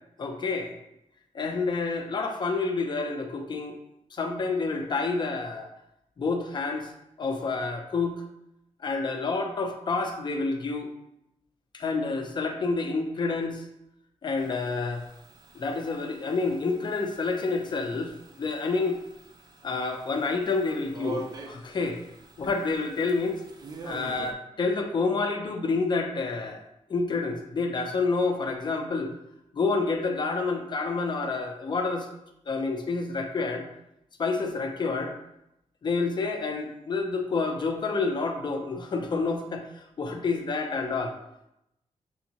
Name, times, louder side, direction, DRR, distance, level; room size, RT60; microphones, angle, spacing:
voice 1, 0.2-0.7 1.3-3.8 4.1-5.7 6.2-6.9 7.2-8.2 8.8-10.9 11.7-13.6 14.2-15.0 15.6-19.0 19.6-22.0 22.4-23.4 23.8-26.6 26.9-29.1 29.5-32.1 32.5-33.7 34.2-35.1 35.8-41.1, left 4 dB, 40° left, 4 dB, 0.5 m, -28 dB
sound 1, 14.4-24.3, right 3 dB, 35° right, 0.5 m, -46 dB
6.9 x 2.6 x 2.9 m, 0.83 s
wide cardioid pair, 180°, 12 cm